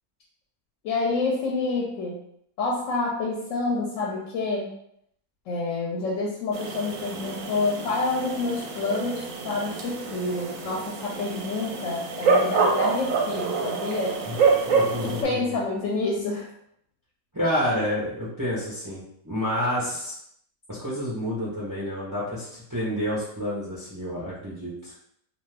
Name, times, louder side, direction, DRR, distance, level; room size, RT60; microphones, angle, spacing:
voice 1, 0.8-2.2 2.6-4.7 5.5-14.2 15.0-16.5, left 3 dB, 65° left, -2 dB, 0.8 m, -28 dB
sound 1, 6.5-15.2, right 4 dB, 70° right, 0.9 m, -27 dB
voice 2, 14.7-15.5 17.3-20.2 20.7-24.9, equal, 30° right, -8 dB, 0.3 m, -29 dB
2.5 x 2.4 x 3.2 m, 0.73 s
omnidirectional pair, 1.6 m